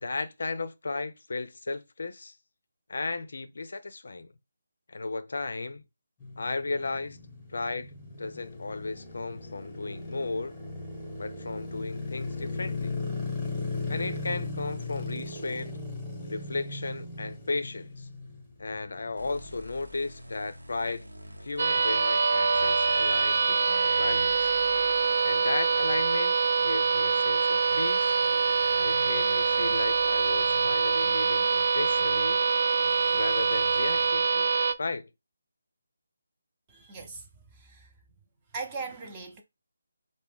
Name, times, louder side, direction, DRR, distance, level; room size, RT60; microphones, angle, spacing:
voice 1, 0.0-2.3 2.9-4.3 4.9-5.8 6.4-7.2 7.5-10.6 11.2-13.0 13.9-15.8 16.2-18.1 18.6-21.1 21.4-24.5 25.2-28.1 28.8-32.4 33.1-34.5 34.8-35.1, left 3 dB, 60° left, 0.4 m, -35 dB
sound 1, 6.2-19.5, left 3 dB, 10° left, 1.0 m, -37 dB
sound 2, 19.2-34.1, equal, 75° right, 0.9 m, -47 dB
sound 3, 21.6-34.7, right 5 dB, 55° right, 0.3 m, -24 dB
voice 2, 36.7-37.3 37.6-37.9 38.5-39.4, right 4 dB, 20° right, 0.7 m, -39 dB
4.6 x 2.1 x 3.5 m
figure-of-eight pair, 155°, 0 cm